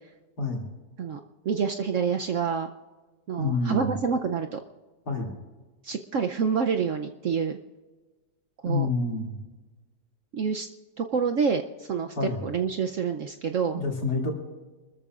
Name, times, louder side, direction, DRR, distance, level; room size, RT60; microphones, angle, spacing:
voice 1, 1.4-2.7 3.3-4.6 5.8-7.6 8.6-8.9 10.3-10.7 11.0-13.8, right 6 dB, 60° right, 5 dB, 0.9 m, -27 dB
voice 2, 3.4-3.9 5.1-5.3 8.6-9.3 12.2-12.4 13.7-14.3, left 3 dB, 70° left, 0 dB, 3.3 m, -28 dB
26.0 x 14.0 x 2.5 m, 1.3 s
omnidirectional pair, 1.8 m